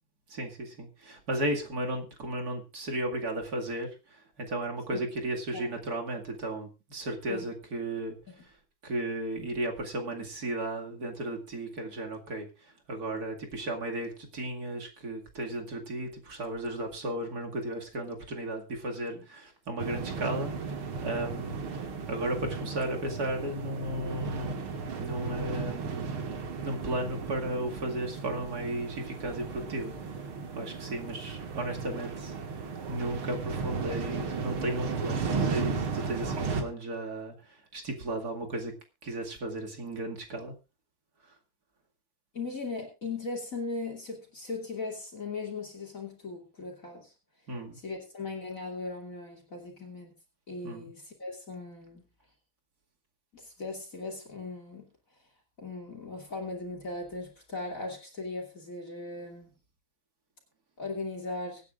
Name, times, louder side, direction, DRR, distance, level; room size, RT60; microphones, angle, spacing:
voice 1, 0.3-8.5 8.8-21.8 22.1-24.6 25.0-26.2 26.6-30.2 30.5-32.4 32.9-38.7 39.0-40.5 47.5-47.8 50.6-50.9, right 1 dB, 50° right, 2 dB, 2.7 m, -35 dB
sound 1, 19.8-36.6, right 5 dB, 85° right, 2.7 m, -35 dB
voice 2, 42.3-47.1 47.8-50.1 50.5-52.0 53.3-54.9 55.6-59.5 60.8-61.6, left 3 dB, 40° left, 1 dB, 3.2 m, -38 dB
24.5 x 9.6 x 2.5 m, 0.28 s
omnidirectional pair, 2.3 m